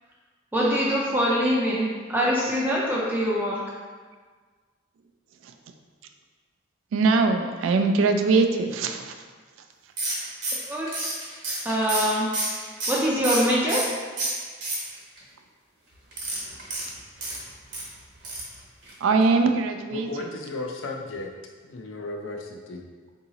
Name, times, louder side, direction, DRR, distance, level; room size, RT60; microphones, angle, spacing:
voice 1, 0.5-3.6 10.7-11.1 11.6-12.3 12.9-13.8, equal, 10° right, -5 dB, 0.3 m, -24 dB
voice 2, 6.9-9.1 19.0-20.1, right 4 dB, 85° right, 6 dB, 0.3 m, -21 dB
sound 1, 10.0-13.9 14.2-15.2 16.1-17.8 18.2-18.5 18.8-18.9 19.2-19.3, right 2 dB, 65° right, 1.0 m, -29 dB
voice 3, 19.9-21.3 21.6-22.9, left 2 dB, 90° left, 2 dB, 0.4 m, -34 dB
3.8 x 2.7 x 2.8 m, 1.5 s
head